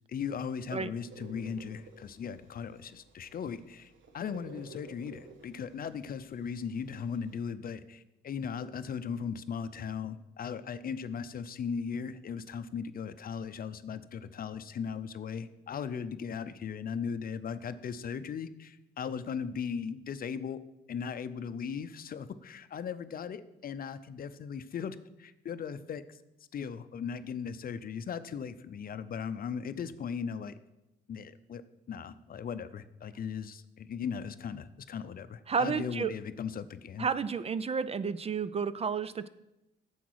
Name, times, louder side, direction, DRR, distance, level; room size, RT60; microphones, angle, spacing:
voice 1, 0.1-20.6 20.9-26.2 26.5-30.6 31.1-31.6 31.9-37.1, left 6 dB, 50° left, 12 dB, 0.6 m, -38 dB
sound 1, 1.0-7.4, right 3 dB, 75° right, 1.3 m, -54 dB
voice 2, 35.5-36.1 37.0-39.3, right 6 dB, 30° right, 15 dB, 0.4 m, -31 dB
10.0 x 7.2 x 4.7 m, 0.93 s
cardioid pair, 90°, 20 cm